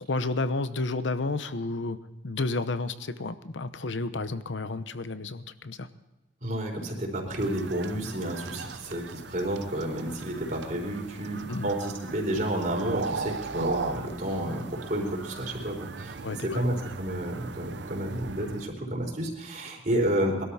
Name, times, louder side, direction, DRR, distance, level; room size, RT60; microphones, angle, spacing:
voice 1, 0.1-2.0 2.2-5.9 11.5-11.7 16.2-16.6, left 3 dB, 85° left, 12 dB, 0.9 m, -31 dB
voice 2, 6.4-20.4, right 1 dB, 45° right, 0 dB, 4.1 m, -30 dB
sound 1, 7.4-18.7, right 4 dB, 70° right, 0.7 m, -38 dB
21.5 x 13.0 x 4.2 m, 1.0 s
head